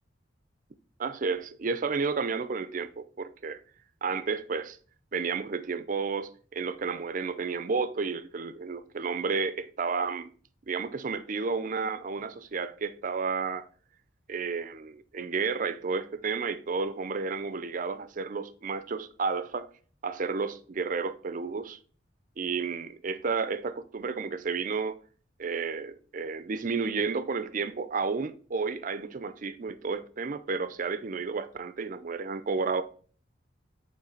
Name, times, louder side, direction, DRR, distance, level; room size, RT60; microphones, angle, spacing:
voice 1, 1.0-3.6 4.0-4.8 5.1-10.3 10.7-13.7 14.3-19.7 20.0-21.8 22.4-25.0 25.4-32.8, right 4 dB, 45° right, 0.4 m, -31 dB
8.3 x 3.2 x 3.9 m
head